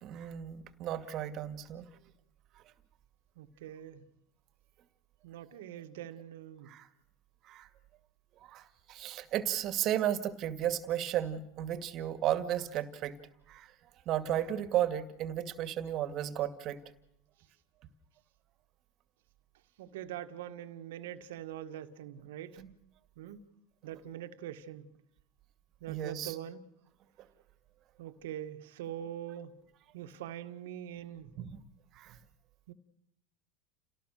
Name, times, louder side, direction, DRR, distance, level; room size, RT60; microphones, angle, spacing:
voice 1, 0.0-1.9 6.7-6.9 7.5-7.7 8.5-13.2 13.5-13.7 14.1-16.8 22.6-22.7 25.9-26.3 31.4-31.6 32.0-32.2, right 11 dB, 50° right, 12 dB, 2.2 m, -34 dB
voice 2, 3.4-4.1 5.2-6.7 19.8-22.6 23.2-23.5 23.8-24.9 25.8-26.6 28.0-29.6 29.9-31.3 32.7-32.8, right 11 dB, 80° right, 8 dB, 1.9 m, -43 dB
29.5 x 18.0 x 6.7 m, 0.81 s
hypercardioid pair, 105°, 0 cm